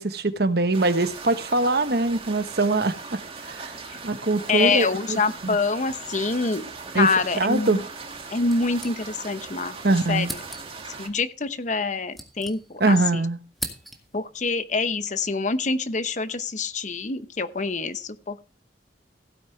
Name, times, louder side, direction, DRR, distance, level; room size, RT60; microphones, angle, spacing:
voice 1, 0.0-3.0 3.4-3.7 4.0-4.9 5.4-5.6 6.9-7.1 7.4-7.8 9.8-10.3 12.8-13.4, right 2 dB, 60° right, 1.1 m, -22 dB
sound 1, 0.7-11.1, right 4 dB, 30° right, 1.9 m, -39 dB
voice 2, 4.5-7.8 8.3-9.8 10.1-10.4 11.0-13.2 14.1-18.4, left 4 dB, 45° left, 0.8 m, -26 dB
sound 2, 8.4-9.5 9.7-9.8 10.2-10.9 11.7-13.0 13.3-14.3, equal, ahead, 1.8 m, -39 dB
16.5 x 9.3 x 3.2 m
head